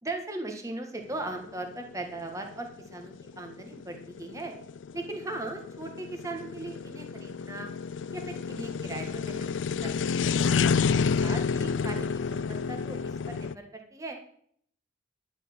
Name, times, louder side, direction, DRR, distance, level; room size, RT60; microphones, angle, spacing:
voice 1, 0.0-4.5 4.9-7.7 8.1-10.2 10.5-10.7 11.2-14.2, right 2 dB, 15° right, 3 dB, 1.6 m, -39 dB
sound 1, 1.1-13.5, left 5 dB, 85° left, 0.4 m, -30 dB
11.0 x 6.6 x 8.8 m, 0.63 s
head